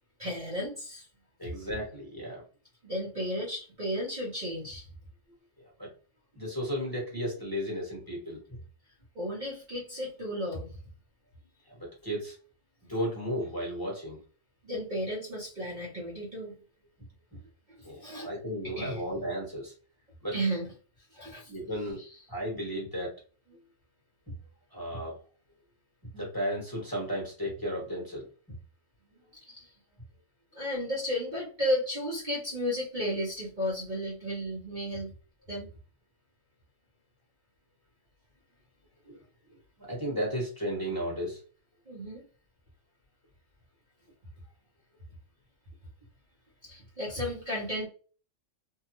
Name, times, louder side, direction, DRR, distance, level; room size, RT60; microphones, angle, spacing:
voice 1, 0.2-1.1 1.4-1.5 2.8-4.9 9.1-10.7 14.6-16.5 17.8-18.3 18.6-19.0 20.3-20.7 21.1-21.5 22.0-22.1 29.5-29.7 30.5-35.1 35.5-35.7 41.9-42.3 46.6-47.9, equal, 45° right, -5 dB, 0.8 m, -33 dB
voice 2, 1.4-2.4 5.8-5.9 6.3-8.4 11.7-12.4 12.9-14.2 17.8-19.7 20.2-20.3 21.5-22.0 22.3-23.1 24.7-25.2 26.1-28.2 39.0-39.2 39.9-41.4, equal, 20° left, -5 dB, 1.2 m, -34 dB
2.7 x 2.2 x 2.9 m, 0.38 s
omnidirectional pair, 1.3 m